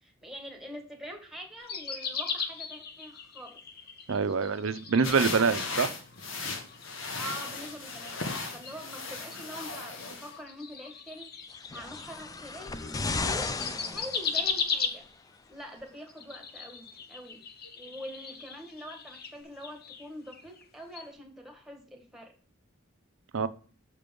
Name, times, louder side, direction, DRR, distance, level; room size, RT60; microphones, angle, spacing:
voice 1, 0.0-3.6 5.1-5.9 7.2-11.3 11.7-13.5 13.9-15.1 15.5-17.4 17.8-22.3, equal, ahead, 1.5 m, -44 dB
sound 1, 1.6-5.8 6.1-13.0 13.3-15.4 16.0-20.7 20.9-21.1, left 5 dB, 50° left, 0.8 m, -38 dB
voice 2, 4.1-5.9 23.3-23.5, right 5 dB, 90° right, 0.6 m, -25 dB
sound 2, 5.0-10.3, left 3 dB, 75° left, 1.3 m, -37 dB
sound 3, 11.5-14.9 15.8-15.9, left 3 dB, 20° left, 0.4 m, -35 dB
6.6 x 5.3 x 5.1 m
head